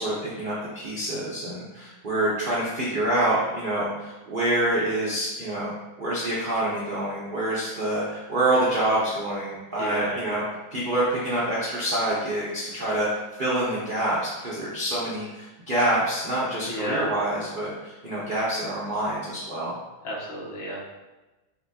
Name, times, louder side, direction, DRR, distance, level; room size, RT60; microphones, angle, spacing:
voice 1, 0.0-5.7 6.0-10.4 10.7-13.1 13.4-19.8, right 1 dB, 85° right, -8 dB, 0.4 m, -26 dB
voice 2, 9.8-10.4 16.7-17.0 20.0-20.9, equal, 80° left, -4 dB, 1.9 m, -32 dB
6.8 x 2.3 x 2.7 m, 1.1 s
omnidirectional pair, 2.2 m